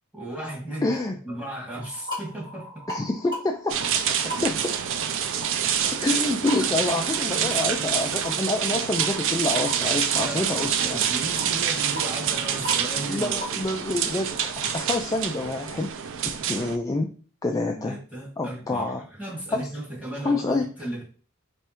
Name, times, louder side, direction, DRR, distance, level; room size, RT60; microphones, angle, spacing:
voice 1, 0.1-0.9 1.2-2.7 4.5-4.6 7.3-7.8 9.9-13.6 17.7-21.0, right 1 dB, 5° right, -5 dB, 1.9 m, -36 dB
voice 2, 0.8-1.2 2.9-4.7 6.0-11.0 13.1-16.0 16.5-17.1 17.4-18.0 18.4-19.0 19.5-19.7 20.2-20.7, left 2 dB, 15° left, 3 dB, 0.3 m, -27 dB
sound 1, 1.8-15.1, equal, 25° right, 1.5 m, -41 dB
sound 2, 3.7-16.8, right 8 dB, 60° right, 0.4 m, -27 dB
3.5 x 3.4 x 4.3 m, 0.41 s
head